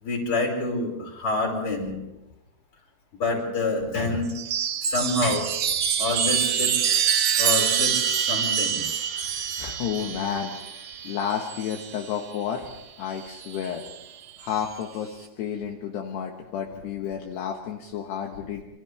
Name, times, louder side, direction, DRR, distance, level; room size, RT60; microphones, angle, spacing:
voice 1, 0.0-2.0 3.2-4.4 4.8-5.5 6.0-7.0 7.4-8.8, left 2 dB, 30° left, 0 dB, 6.0 m, -27 dB
Chime, 4.3-12.1 13.3-13.9, right 8 dB, 70° right, 1.6 m, -26 dB
voice 2, 9.6-12.7 13.0-13.8 14.4-18.6, left 8 dB, 70° left, 1 dB, 3.4 m, -31 dB
28.0 x 27.0 x 3.5 m, 0.96 s
omnidirectional pair, 5.1 m